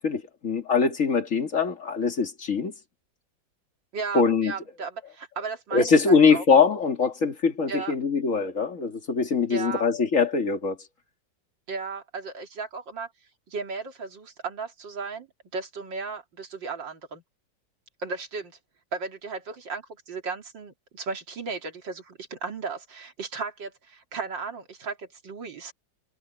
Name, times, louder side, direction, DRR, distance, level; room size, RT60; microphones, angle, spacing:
voice 1, 0.0-2.7 4.1-4.5 5.7-10.8, left 5 dB, 45° left, 2.6 m, -22 dB
voice 2, 3.9-6.4 7.7-7.9 9.5-9.9 11.7-13.1 13.5-15.3 15.5-17.2 18.0-18.6 18.9-25.7, right 4 dB, 75° right, 3.3 m, -35 dB
omnidirectional pair, 2.0 m